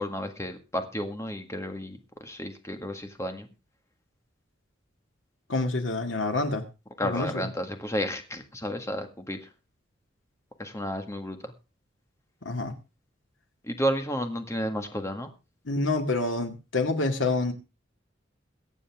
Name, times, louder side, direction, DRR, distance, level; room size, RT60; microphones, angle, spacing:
voice 1, 0.0-3.5 7.0-9.4 10.6-11.5 13.6-15.3, equal, 15° left, 6 dB, 1.9 m, -32 dB
voice 2, 5.5-6.6 7.0-7.5 12.4-12.7 15.7-17.5, left 2 dB, 90° left, 5 dB, 2.3 m, -27 dB
22.5 x 8.4 x 3.6 m, 0.30 s
head